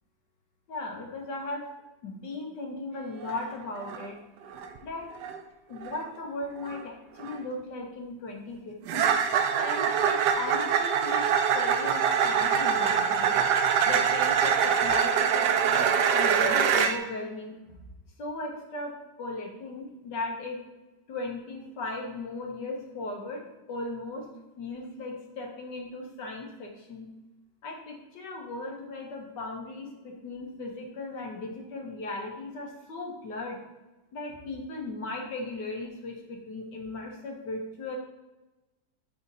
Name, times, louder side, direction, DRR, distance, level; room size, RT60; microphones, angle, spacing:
voice 1, 0.7-1.7 2.0-4.2 4.8-5.1 5.7-9.1 9.6-11.3 11.5-13.4 13.8-17.8 18.2-20.6 21.1-24.3 24.6-27.1 27.6-33.6 34.1-38.0, left 2 dB, 65° left, 1 dB, 1.6 m, -37 dB
sound 1, 3.2-3.4 3.8-4.1 4.5-4.8 5.2-5.4 5.8-6.0 6.7-6.8 7.2-7.4 8.9-17.0, right 7 dB, 70° right, 1.0 m, -24 dB
5.5 x 4.4 x 4.0 m, 1.1 s
omnidirectional pair, 2.0 m